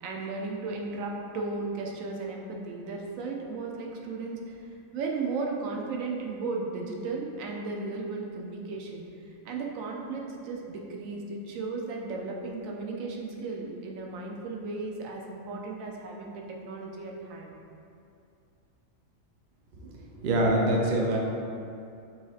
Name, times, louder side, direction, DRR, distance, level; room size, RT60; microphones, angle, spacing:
voice 1, 0.0-9.0 9.4-17.5, right 3 dB, 75° right, 0 dB, 1.0 m, -35 dB
voice 2, 20.2-21.2, right 1 dB, 60° right, -2 dB, 0.5 m, -24 dB
6.0 x 2.8 x 2.4 m, 2.6 s
omnidirectional pair, 1.4 m